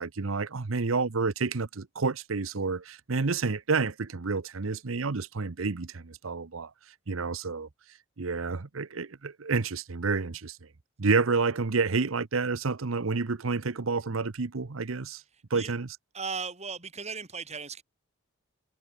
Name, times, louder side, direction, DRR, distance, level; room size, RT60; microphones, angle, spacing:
voice 1, 0.0-6.7 7.1-7.7 8.2-10.7 11.0-15.2 15.5-15.9, right 4 dB, 85° right, 0.9 m, -29 dB
voice 2, 16.1-17.8, right 5 dB, 35° right, 6.4 m, -36 dB
head